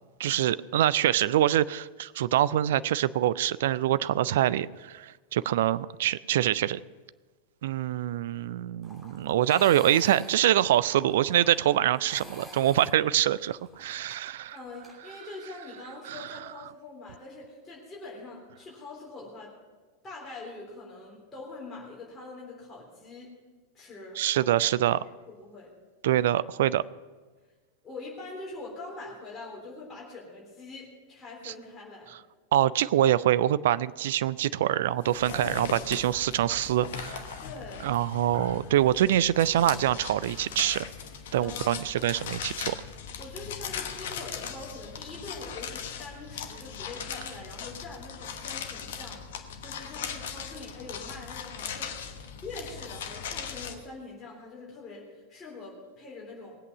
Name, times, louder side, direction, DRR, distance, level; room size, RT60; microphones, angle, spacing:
voice 1, 0.2-6.8 7.6-14.6 16.1-16.2 24.2-25.0 26.0-26.8 31.4-31.5 32.5-37.2 37.8-40.8 41.3-42.8, right 12 dB, 55° right, 18 dB, 0.4 m, -25 dB
sound 1, 8.8-14.9, equal, 10° right, 3.0 m, -48 dB
voice 2, 14.5-19.5 20.0-23.3 23.7-24.7 24.9-25.7 27.8-32.1 35.3-35.7 37.4-37.9 41.4-41.9 43.2-56.6, left 3 dB, 15° left, -5 dB, 3.6 m, -44 dB
sound 2, 35.0-53.7, left 7 dB, 55° left, 1.1 m, -39 dB
19.5 x 8.3 x 5.9 m, 1.3 s
figure-of-eight pair, 90°, 0 cm